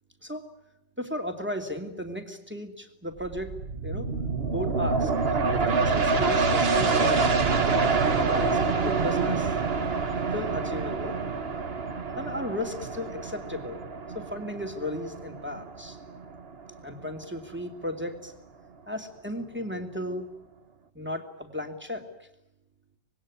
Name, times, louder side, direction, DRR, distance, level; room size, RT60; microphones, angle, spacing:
voice 1, 1.0-3.5 3.8-4.1 4.5-5.1 5.5-7.4 8.3-9.6 10.3-11.2 12.2-13.9 14.1-16.0 16.8-18.3 18.9-20.3 20.9-22.0, left 1 dB, 5° right, 4 dB, 2.7 m, -35 dB
sound 1, 3.2-16.5 16.9-17.0, right 4 dB, 35° right, 1.4 m, -26 dB
26.0 x 20.0 x 9.8 m, 0.88 s
omnidirectional pair, 1.9 m